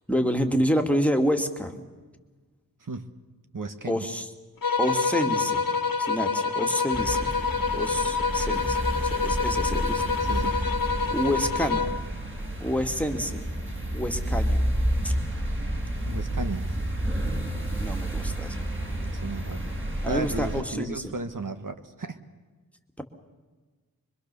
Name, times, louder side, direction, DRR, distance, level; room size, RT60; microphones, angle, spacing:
voice 1, 0.1-1.7 3.9-4.3 4.8-5.7 6.0-7.3 7.7-10.0 10.5-10.7 11.1-11.9 12.6-13.4 13.9-14.6 15.0-15.1 17.8-18.6 20.0-21.1, equal, 5° left, 4 dB, 2.3 m, -28 dB
voice 2, 3.5-4.1 10.2-10.6 16.0-16.8 19.0-19.8 20.1-22.2, right 3 dB, 60° right, 8 dB, 1.7 m, -34 dB
sound 1, 4.6-12.1, left 5 dB, 70° left, 1.6 m, -27 dB
sound 2, 6.9-20.6, right 1 dB, 35° right, 6.1 m, -30 dB
25.0 x 23.5 x 7.0 m, 1.3 s
wide cardioid pair, 75°, 36 cm